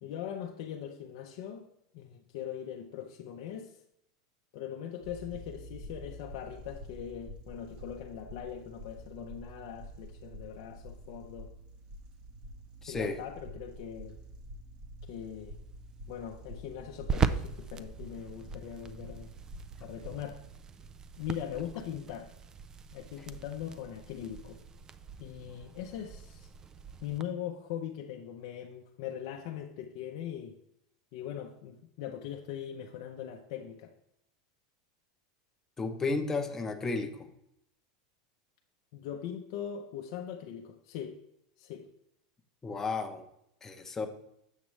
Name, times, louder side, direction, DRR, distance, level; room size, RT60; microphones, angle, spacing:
voice 1, 0.0-1.7 1.9-3.7 4.5-11.5 12.9-14.2 15.1-15.6 16.1-19.3 19.8-20.4 21.2-22.3 22.9-24.6 25.2-26.5 27.0-30.6 31.1-33.9 38.9-41.2 41.6-41.9, left 9 dB, 65° left, 2 dB, 0.6 m, -41 dB
sound 1, 5.0-20.6, right 1 dB, 40° right, 1.0 m, -48 dB
voice 2, 12.8-13.2 35.8-37.3 42.6-43.2 43.6-44.1, left 3 dB, 15° left, 5 dB, 0.7 m, -33 dB
sound 2, 15.0-27.2, right 6 dB, 25° right, 0.3 m, -39 dB
7.3 x 6.0 x 3.2 m, 0.77 s
supercardioid pair, 120°, 3 cm